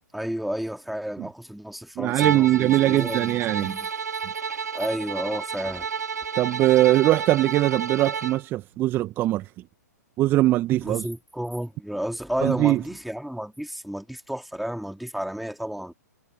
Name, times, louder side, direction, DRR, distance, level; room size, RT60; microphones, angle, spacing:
voice 1, 0.1-3.9 4.7-5.9 10.8-15.9, equal, ahead, 3.4 m, -32 dB
voice 2, 2.0-3.7 6.3-9.5 10.2-11.1 12.4-12.8, right 15 dB, 25° right, 1.4 m, -21 dB
Bowed string instrument, 2.2-8.4, right 6 dB, 70° right, 1.1 m, -30 dB
figure-of-eight pair, 115°, 9 cm